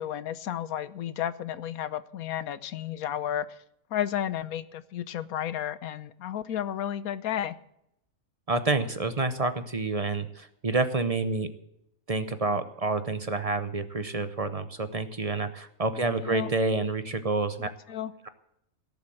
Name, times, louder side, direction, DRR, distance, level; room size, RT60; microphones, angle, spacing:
voice 1, 0.0-3.6 3.9-7.5 16.0-16.5 17.6-18.1, left 10 dB, 85° left, 15 dB, 1.2 m, -32 dB
voice 2, 8.5-11.5 12.1-17.7, right 3 dB, 30° right, 11 dB, 0.7 m, -28 dB
17.0 x 7.3 x 7.8 m, 0.78 s
omnidirectional pair, 1.5 m